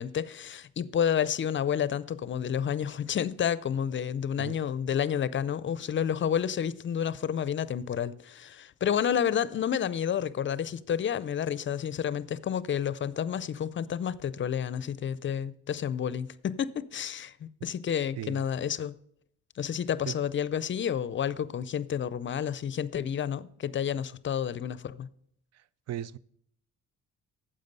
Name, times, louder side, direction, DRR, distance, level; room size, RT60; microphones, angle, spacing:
voice 1, 0.0-19.0 19.6-25.1, left 8 dB, 40° left, 0.5 m, -30 dB
voice 2, 25.5-26.2, right 11 dB, 60° right, 0.4 m, -37 dB
9.4 x 7.5 x 5.3 m
cardioid pair, 90°, 30 cm